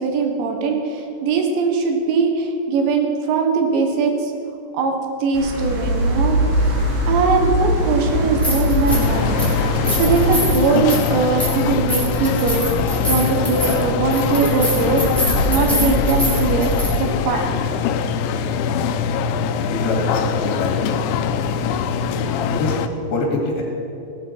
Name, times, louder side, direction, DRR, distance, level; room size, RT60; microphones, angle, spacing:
voice 1, 0.0-4.3 4.7-5.0 5.2-6.4 6.7-6.8 7.1-12.7 13.1-16.7 17.0-17.6 22.1-22.3, right 4 dB, 80° right, 3 dB, 3.6 m, -21 dB
sound 1, 5.3-10.5, equal, 55° right, 4.2 m, -21 dB
sound 2, 8.3-9.1 9.4-16.9, equal, ahead, 2.9 m, -24 dB
sound 3, 8.9-22.9, left 7 dB, 90° left, 3.0 m, -22 dB
voice 2, 19.7-20.8 22.4-22.7 23.1-23.6, left 2 dB, 70° left, -1 dB, 4.4 m, -24 dB
17.0 x 12.5 x 4.6 m, 2.7 s
omnidirectional pair, 5.2 m